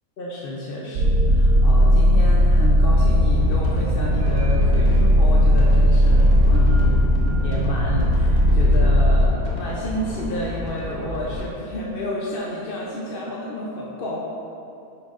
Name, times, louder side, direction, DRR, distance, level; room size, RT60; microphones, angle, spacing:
voice 1, 0.2-7.1 7.4-14.2, left 1 dB, 45° left, -4 dB, 0.8 m, -31 dB
sound 1, 1.0-9.3, equal, 75° right, 1.1 m, -17 dB
sound 2, 3.3-11.4, left 1 dB, 80° left, 1.6 m, -32 dB
9.3 x 7.0 x 2.5 m, 2.8 s
omnidirectional pair, 1.5 m